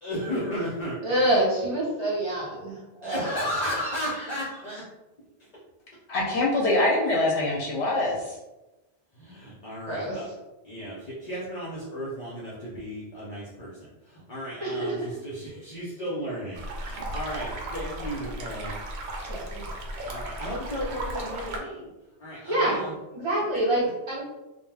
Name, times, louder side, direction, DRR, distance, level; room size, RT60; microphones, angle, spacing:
voice 1, 0.0-1.0 3.0-4.9 9.1-10.3 10.6-18.8 20.0-21.9 22.2-22.9 23.3-23.4 23.8-23.9, equal, 45° left, -6 dB, 0.6 m, -34 dB
voice 2, 1.0-3.2 9.9-10.2 14.6-14.9 19.3-19.6 22.5-22.8 23.1-24.2, right 1 dB, 30° right, -8 dB, 0.7 m, -26 dB
voice 3, 6.1-8.4, left 2 dB, 70° left, -3 dB, 0.8 m, -24 dB
sound 1, 16.5-21.6, right 1 dB, 70° right, 0.8 m, -35 dB
2.3 x 2.2 x 3.3 m, 1.0 s
omnidirectional pair, 1.2 m